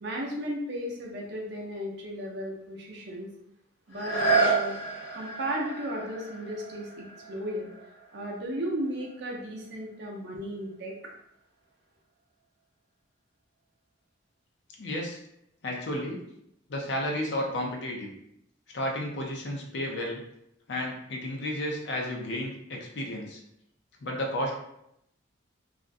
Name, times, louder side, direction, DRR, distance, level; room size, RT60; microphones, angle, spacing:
voice 1, 0.0-3.3 3.9-4.8 5.1-7.7 8.1-11.0, equal, 55° right, -1 dB, 0.5 m, -35 dB
sound 1, 3.9-9.5 10.1-10.2, right 4 dB, 80° left, 1.0 m, -31 dB
voice 2, 14.8-15.2 15.6-16.2 16.7-18.1 18.7-20.2 20.7-23.4 24.0-24.5, left 1 dB, 60° left, 0 dB, 0.5 m, -32 dB
2.4 x 2.1 x 2.5 m, 0.77 s
head